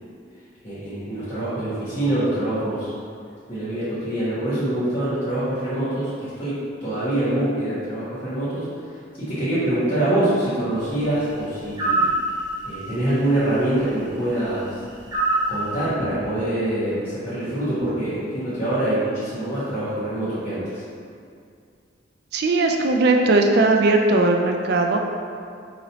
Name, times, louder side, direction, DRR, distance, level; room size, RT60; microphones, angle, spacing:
voice 1, 0.6-2.9 3.5-6.5 6.8-8.6 9.2-12.1 12.6-14.8 15.5-20.8, right 1 dB, 30° left, -15 dB, 1.0 m, -25 dB
sound 1, 11.8-12.2 15.1-15.5, right 3 dB, 15° right, 1.0 m, -21 dB
voice 2, 22.3-25.0, right 2 dB, 60° right, 3 dB, 0.4 m, -18 dB
4.0 x 2.9 x 2.8 m, 2.3 s
head